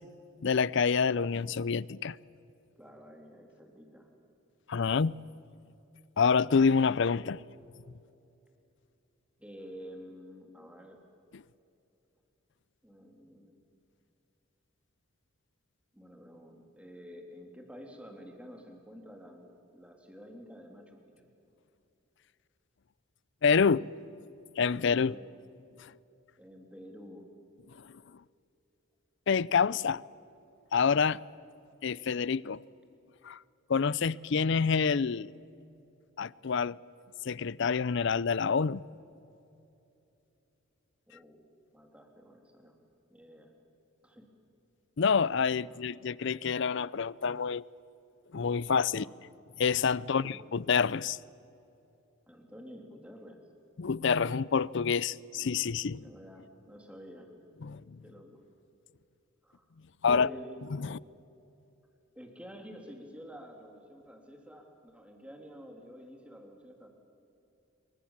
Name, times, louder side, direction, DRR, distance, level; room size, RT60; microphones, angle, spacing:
voice 1, 0.4-2.2 4.7-5.1 6.2-7.4 23.4-23.9 24.6-25.1 29.3-30.0 30.7-31.2 31.8-32.6 33.2-33.4 33.7-35.3 36.2-36.8 37.2-38.8 45.0-47.6 48.3-49.0 49.6-51.2 53.8-56.0 57.6-58.0 60.0-60.3 60.9-61.0, left 5 dB, 60° left, 0.5 m, -27 dB
voice 2, 2.8-4.1 9.4-11.0 12.8-13.5 15.9-19.5 19.7-21.3 25.0-25.4 26.4-27.3 41.1-41.4 41.7-42.8 43.1-43.5 44.0-44.3 45.6-45.8 48.9-49.2 50.0-50.4 52.3-53.4 56.0-57.3 58.0-58.4 59.4-59.7 60.1-60.6 62.1-66.9, equal, 5° right, 3.3 m, -50 dB
27.0 x 24.0 x 7.3 m
head